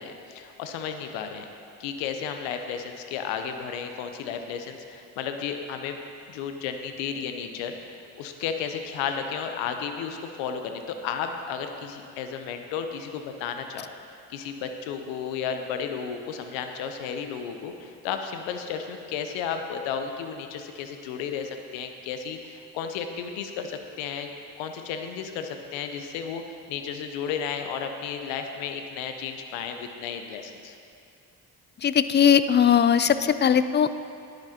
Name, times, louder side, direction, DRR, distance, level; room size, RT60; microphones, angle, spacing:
voice 1, 0.0-1.5 1.8-6.0 6.3-13.9 14.3-24.3 24.6-30.7, left 7 dB, 80° left, 6 dB, 0.8 m, -33 dB
voice 2, 31.8-33.9, left 8 dB, 25° left, 13 dB, 0.4 m, -19 dB
13.0 x 10.5 x 2.8 m, 2.5 s
hypercardioid pair, 40°, 45 cm